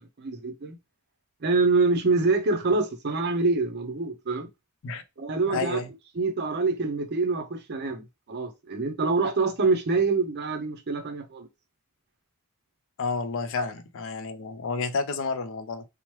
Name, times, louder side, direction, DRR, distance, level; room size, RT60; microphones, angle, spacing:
voice 1, 0.2-0.8 1.4-4.5 5.2-5.8 6.1-11.5, right 3 dB, 50° right, 0.5 m, -25 dB
voice 2, 5.5-5.9 13.0-15.8, left 4 dB, 60° left, 0.4 m, -30 dB
3.0 x 2.0 x 3.0 m
head